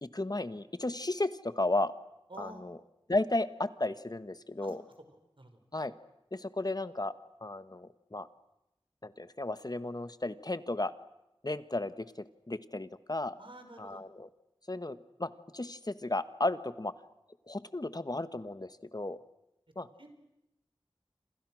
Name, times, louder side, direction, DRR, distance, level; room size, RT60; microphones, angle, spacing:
voice 1, 0.0-1.9 2.4-2.8 3.1-4.8 5.7-5.9 6.3-7.1 7.4-8.3 9.0-10.9 11.4-13.3 13.8-14.3 14.7-16.9 17.5-19.2 19.7-19.9, left 2 dB, 45° left, 12 dB, 1.4 m, -34 dB
voice 2, 2.3-2.6 4.6-4.7 5.4-5.6 13.4-14.0 20.0-20.1, right 1 dB, 65° right, 6 dB, 5.3 m, -48 dB
29.0 x 27.5 x 6.4 m, 0.89 s
wide cardioid pair, 40°, 9 cm